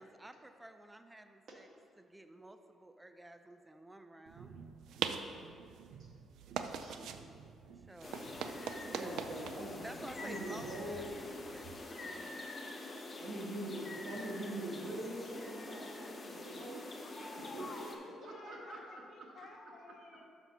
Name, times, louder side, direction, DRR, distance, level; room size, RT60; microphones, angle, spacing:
voice 1, 0.0-1.7 2.0-4.5 7.7-9.3 9.8-12.4, right 1 dB, 10° right, 8 dB, 0.4 m, -52 dB
sound 1, 4.3-11.8, right 7 dB, 80° right, 0.4 m, -44 dB
voice 2, 6.5-7.3 9.0-9.8 10.2-11.3 13.2-16.8 17.4-17.7 18.0-18.8, right 1 dB, 60° right, -1 dB, 1.5 m, -44 dB
sound 2, 8.0-18.0, left 2 dB, 30° left, 0.9 m, -46 dB
voice 3, 17.0-20.2, left 2 dB, 55° left, 1 dB, 1.2 m, -53 dB
6.0 x 5.8 x 5.5 m, 2.3 s
cardioid pair, 90°, 0 cm